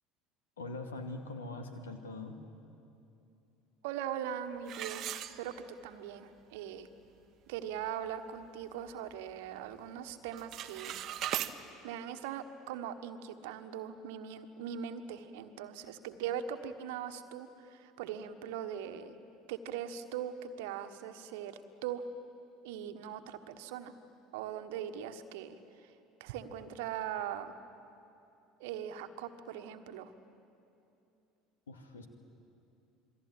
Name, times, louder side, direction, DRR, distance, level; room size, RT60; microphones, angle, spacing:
voice 1, 0.6-2.4 31.7-32.1, left 2 dB, 75° left, 6 dB, 2.3 m, -42 dB
voice 2, 3.8-5.5 5.8-6.9 7.5-11.1 11.8-19.2 19.5-22.0 22.6-23.9 24.3-25.9 26.2-27.5 28.6-30.1, right 9 dB, 60° right, 8 dB, 1.4 m, -40 dB
sound 1, 4.7-5.9 6.4-6.5 7.0-7.1 7.5-7.8 8.3-9.4 9.7-10.0 10.3-11.5, right 12 dB, 45° right, 1.1 m, -39 dB
27.5 x 22.0 x 9.0 m, 2.7 s
figure-of-eight pair, 65°, 0 cm